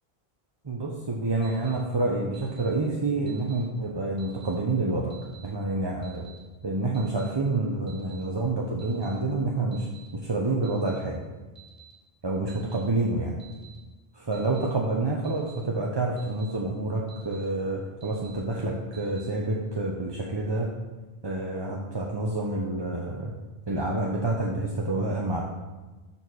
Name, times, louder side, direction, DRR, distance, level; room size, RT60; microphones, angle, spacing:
voice 1, 0.6-5.1 5.4-6.2 6.6-9.9 10.1-11.2 12.2-13.4 14.1-20.7 21.2-23.3 23.7-25.4, right 2 dB, 30° right, -2 dB, 0.7 m, -28 dB
Alarm, 1.4-1.8 2.3-2.7 3.3-3.6 4.2-4.5 5.1-5.5 6.0-6.4 6.9-7.3 7.9-8.2 8.8-9.1 9.7-10.1 10.6-11.0 11.5-11.9 12.5-12.8 13.4-13.8 14.3-14.7 15.2-15.6 16.2-16.5 17.1-17.4 18.0-18.4 18.9-19.3, right 10 dB, 65° right, 2.1 m, -52 dB
6.8 x 4.5 x 6.1 m, 1.2 s
omnidirectional pair, 1.1 m